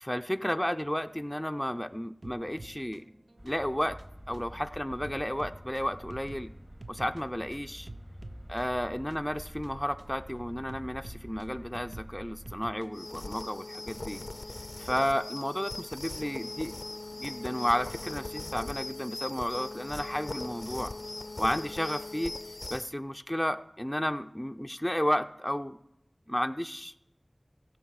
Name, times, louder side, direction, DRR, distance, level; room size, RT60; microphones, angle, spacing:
voice 1, 0.0-3.0 3.4-4.0 4.3-6.5 6.9-7.9 8.5-14.2 14.8-16.7 17.2-20.9 21.4-22.3 22.7-25.8 26.3-26.9, equal, 10° left, 6 dB, 0.4 m, -32 dB
sound 1, 2.2-13.4, right 2 dB, 80° right, 0.6 m, -50 dB
sound 2, 3.4-12.6, equal, 35° right, 2.2 m, -47 dB
sound 3, 12.9-22.9, left 2 dB, 70° left, 0.4 m, -40 dB
16.0 x 6.4 x 4.7 m, 0.83 s
wide cardioid pair, 45°, 0 cm